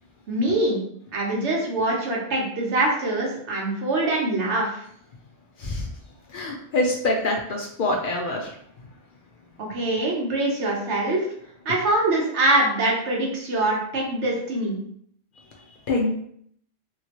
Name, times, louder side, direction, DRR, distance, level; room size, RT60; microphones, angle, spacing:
voice 1, 0.3-0.8 1.1-4.8 9.6-11.2 11.6-14.8, right 2 dB, 75° right, -2 dB, 1.2 m, -24 dB
voice 2, 6.3-8.5 15.9-16.1, left 2 dB, 60° left, 0 dB, 0.6 m, -25 dB
3.0 x 2.7 x 2.9 m, 0.65 s
omnidirectional pair, 1.2 m